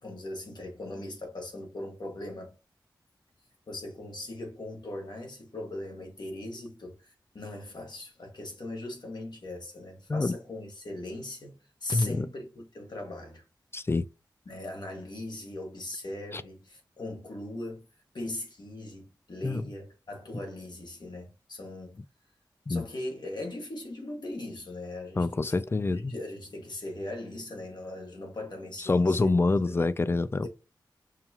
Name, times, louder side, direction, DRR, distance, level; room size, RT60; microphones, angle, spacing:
voice 1, 0.0-2.5 3.7-13.4 14.4-17.8 18.1-22.0 22.7-25.7 25.9-29.4 29.6-29.7, left 1 dB, 65° left, 1.5 m, -39 dB
voice 2, 11.9-12.3 13.7-14.1 16.3-16.4 19.4-19.6 22.7-22.8 25.2-26.1 28.8-30.5, left 3 dB, 30° left, 0.3 m, -26 dB
5.6 x 2.3 x 2.8 m
wide cardioid pair, 60°, 8 cm